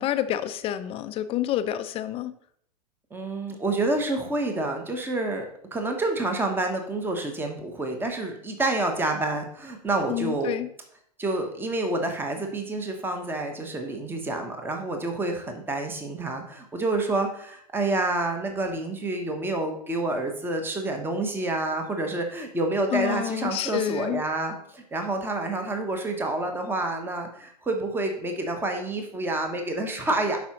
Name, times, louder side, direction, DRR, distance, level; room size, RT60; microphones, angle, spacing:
voice 1, 0.0-2.3 10.1-10.7 22.9-24.2, left 12 dB, 30° left, 11 dB, 0.5 m, -28 dB
voice 2, 3.1-5.4 5.7-10.5 11.2-30.4, right 2 dB, 10° right, 4 dB, 1.0 m, -28 dB
11.5 x 4.8 x 2.9 m, 0.66 s
figure-of-eight pair, 100°, 21 cm